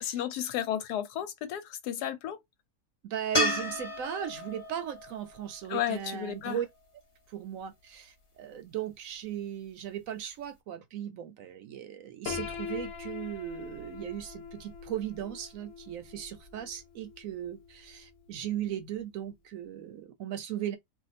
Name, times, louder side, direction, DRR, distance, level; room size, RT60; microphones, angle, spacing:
voice 1, 0.0-2.4 5.7-6.6, left 10 dB, 90° left, 1.2 m, -33 dB
voice 2, 3.0-6.7 7.3-20.8, right 10 dB, 70° right, 0.9 m, -37 dB
sound 1, 3.3-6.6 9.8-9.9, left 1 dB, 25° left, 0.9 m, -33 dB
Piano, 12.3-18.1, left 6 dB, 65° left, 1.0 m, -42 dB
2.6 x 2.3 x 4.0 m
omnidirectional pair, 1.7 m